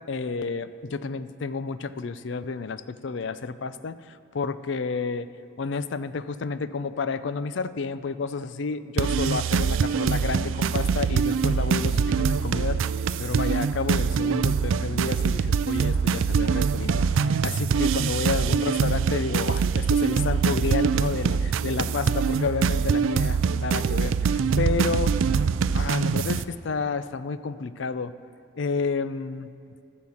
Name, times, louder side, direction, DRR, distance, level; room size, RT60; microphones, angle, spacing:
voice 1, 0.0-5.3 5.6-12.8 13.2-17.1 17.4-25.4 25.7-28.1 28.6-29.5, left 4 dB, 65° left, 13 dB, 0.5 m, -30 dB
sound 1, 9.0-26.4, right 6 dB, 80° right, 0.4 m, -24 dB
14.5 x 6.5 x 7.2 m, 2.6 s
head